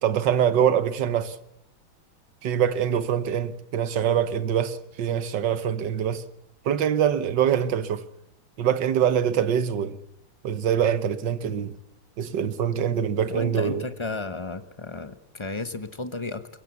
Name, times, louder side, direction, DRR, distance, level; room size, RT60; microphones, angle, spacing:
voice 1, 0.0-1.4 2.4-6.2 6.6-8.0 8.6-10.0 10.4-11.7 12.2-13.8, right 9 dB, 60° right, 1.7 m, -24 dB
voice 2, 13.3-16.5, left 2 dB, 30° left, 0.5 m, -33 dB
23.0 x 22.5 x 8.4 m
omnidirectional pair, 2.2 m